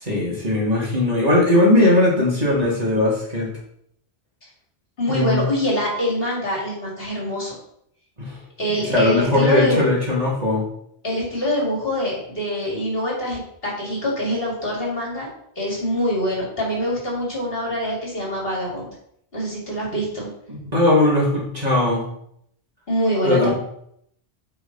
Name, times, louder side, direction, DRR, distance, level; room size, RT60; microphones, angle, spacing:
voice 1, 0.0-3.5 5.1-5.5 8.2-8.4 8.9-10.7 20.5-22.0 23.2-23.5, left 2 dB, 35° right, -4 dB, 2.5 m, -19 dB
voice 2, 5.0-7.5 8.6-9.8 11.0-15.3 15.6-18.9 19.3-20.3 22.9-23.5, equal, 60° left, -3 dB, 2.9 m, -24 dB
8.7 x 4.8 x 4.1 m, 0.70 s
omnidirectional pair, 1.1 m